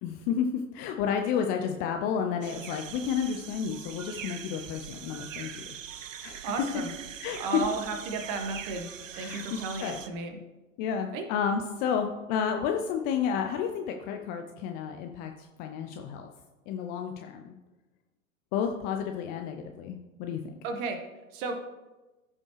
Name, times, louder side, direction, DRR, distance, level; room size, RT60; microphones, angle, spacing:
voice 1, 0.0-5.7 6.2-6.7 7.2-7.6 9.1-10.0 10.8-16.3 16.7-17.5 18.5-20.4, left 7 dB, 25° left, 4 dB, 0.4 m, -31 dB
sound 1, 2.4-10.1, right 9 dB, 65° right, 0.7 m, -42 dB
voice 2, 6.4-6.9 7.4-8.9 9.2-10.4 11.1-11.2 20.6-21.0 21.3-21.5, right 3 dB, 40° right, 5 dB, 1.4 m, -33 dB
14.5 x 5.2 x 3.2 m, 1.1 s
figure-of-eight pair, 95°, 41 cm